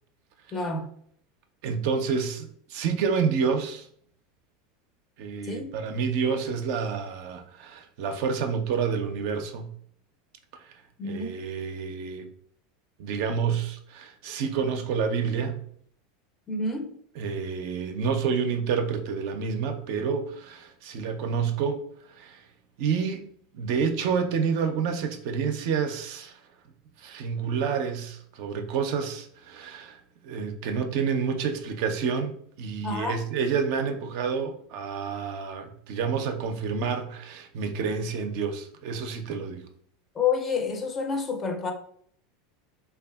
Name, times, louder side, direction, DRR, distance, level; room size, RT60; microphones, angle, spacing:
voice 1, 0.5-0.9 5.5-5.7 11.0-11.3 16.5-16.9 32.8-33.2 40.2-41.7, left 4 dB, 30° left, 0.5 m, -28 dB
voice 2, 1.6-3.9 5.2-9.7 10.6-10.7 11.0-12.3 13.0-15.6 17.2-22.4 22.8-23.3 23.5-26.4 27.0-30.0 30.2-39.7, right 6 dB, 65° right, 0.4 m, -29 dB
2.6 x 2.3 x 2.2 m
hypercardioid pair, 90°, 0 cm